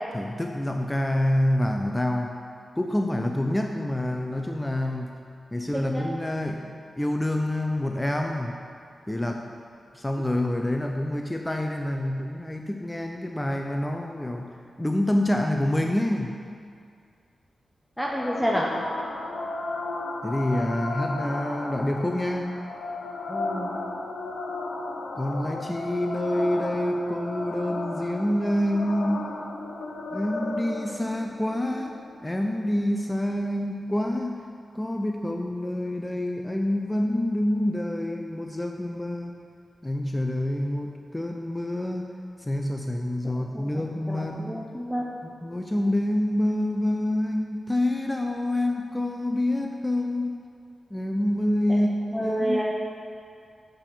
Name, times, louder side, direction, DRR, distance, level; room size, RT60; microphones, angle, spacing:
voice 1, 0.1-2.3 2.8-5.1 5.5-8.6 9.1-9.4 9.9-14.5 14.8-16.4 20.2-22.5 25.1-29.4 30.1-34.4 34.7-39.3 39.8-42.1 42.4-44.7 45.2-50.4 50.9-51.9 52.2-52.6, left 1 dB, 15° left, 3 dB, 0.6 m, -27 dB
sound 1, 18.0-33.0, left 2 dB, 85° left, 0.8 m, -34 dB
voice 2, 18.0-18.7 23.3-23.7 43.2-45.1 51.7-51.8 52.1-52.6, equal, ahead, -3 dB, 1.0 m, -29 dB
7.7 x 4.5 x 7.0 m, 2.3 s
cardioid pair, 45°, 0 cm